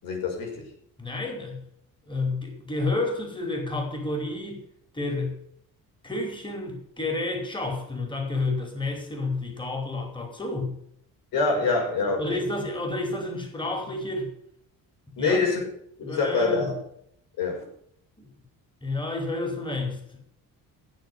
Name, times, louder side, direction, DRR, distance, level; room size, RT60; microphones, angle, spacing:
voice 1, 0.0-0.7 11.3-12.4 15.2-15.6 16.0-16.7 17.4-17.6, left 4 dB, 75° left, 2 dB, 6.2 m, -25 dB
voice 2, 1.0-1.6 2.1-4.6 4.9-5.4 6.0-10.8 12.2-14.3 15.2-15.4 16.0-16.7 18.2-18.3 18.8-20.0, left 2 dB, 15° left, 3 dB, 4.9 m, -30 dB
16.0 x 7.4 x 8.1 m, 0.69 s
cardioid pair, 110°, 35 cm